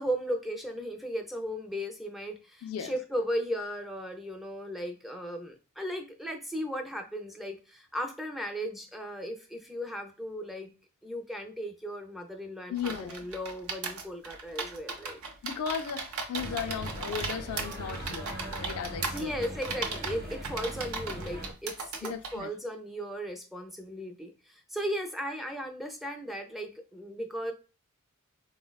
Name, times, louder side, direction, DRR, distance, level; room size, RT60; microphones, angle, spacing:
voice 1, 0.0-10.7 11.0-15.2 19.1-27.5, equal, ahead, 0.4 m, -36 dB
voice 2, 2.6-2.9 12.7-13.3 15.4-18.3 18.6-19.4 22.0-22.5, left 7 dB, 75° left, 0.3 m, -36 dB
sound 1, 12.8-22.4, right 4 dB, 75° right, 0.6 m, -37 dB
sound 2, 16.4-21.5, right 1 dB, 45° right, 0.8 m, -40 dB
3.9 x 2.1 x 2.2 m
head